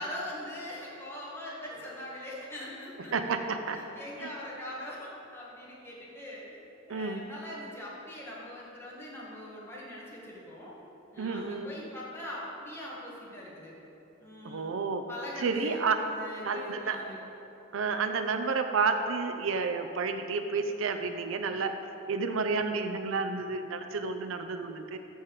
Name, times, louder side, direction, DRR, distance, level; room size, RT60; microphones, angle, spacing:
voice 1, 0.0-3.1 3.7-6.5 6.9-10.7 11.1-13.7 14.2-14.7 15.1-17.2, left 1 dB, 10° left, -6 dB, 1.9 m, -42 dB
voice 2, 3.1-3.8 4.2-4.3 6.9-7.2 11.2-11.7 14.4-15.1 15.4-16.0 16.4-17.0 17.7-21.7 22.1-25.0, right 4 dB, 70° right, 7 dB, 0.5 m, -30 dB
13.5 x 4.6 x 4.8 m, 2.9 s
head